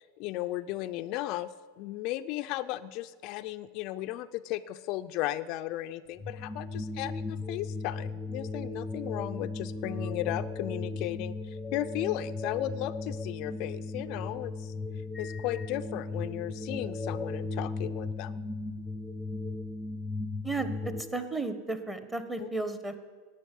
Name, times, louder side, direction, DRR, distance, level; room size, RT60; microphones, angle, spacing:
voice 1, 0.0-14.7 15.2-18.4 22.4-22.5, left 15 dB, 50° left, 9 dB, 0.4 m, -35 dB
sound 1, 6.2-21.0, left 3 dB, 10° left, 0.8 m, -36 dB
voice 2, 20.4-23.0, right 3 dB, 10° right, 9 dB, 1.1 m, -34 dB
11.0 x 8.9 x 9.9 m, 1.5 s
supercardioid pair, 135°, 0 cm